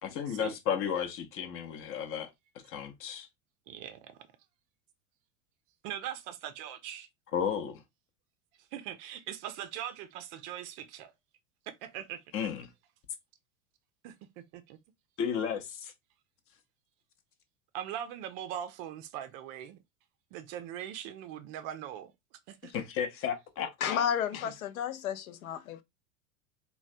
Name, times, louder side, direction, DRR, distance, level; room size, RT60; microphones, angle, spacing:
voice 1, 0.0-2.3 2.7-3.3 7.3-7.8 12.3-12.7 15.2-15.9 22.7-24.0, left 8 dB, 30° left, 0.6 m, -33 dB
voice 2, 3.7-4.2 5.8-7.1 8.7-11.1 11.8-12.5 14.0-14.8 17.7-19.8 20.3-22.1 22.5-22.7, right 10 dB, 40° right, 0.5 m, -41 dB
voice 3, 23.8-25.8, left 8 dB, 75° left, 0.5 m, -32 dB
3.1 x 2.2 x 2.5 m
figure-of-eight pair, 85°, 43 cm